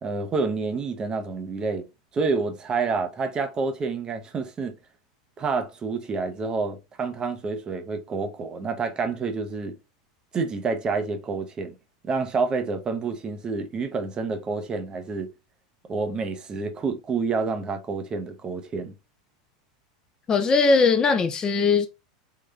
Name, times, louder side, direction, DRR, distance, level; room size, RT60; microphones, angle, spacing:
voice 1, 0.0-1.8 2.1-4.7 5.4-9.7 10.3-11.7 12.0-15.3 15.9-18.9, right 4 dB, 25° right, 0.6 m, -28 dB
voice 2, 20.3-21.9, left 4 dB, 20° left, 0.5 m, -20 dB
3.8 x 2.2 x 3.2 m
supercardioid pair, 130°, 4 cm